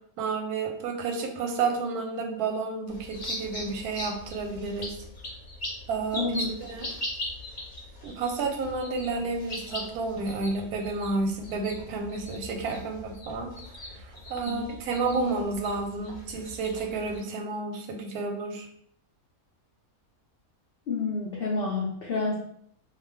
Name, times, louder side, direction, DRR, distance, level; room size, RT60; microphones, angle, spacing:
voice 1, 0.2-4.9 5.9-6.3 6.6-6.9 8.0-13.5 13.9-18.7, right 4 dB, 90° right, 3 dB, 1.1 m, -31 dB
sound 1, 2.9-17.2, left 1 dB, 40° left, 0.8 m, -40 dB
voice 2, 6.1-6.6 14.4-14.7 20.9-22.4, left 3 dB, 75° left, -3 dB, 0.5 m, -29 dB
2.4 x 2.3 x 3.2 m, 0.68 s
omnidirectional pair, 1.6 m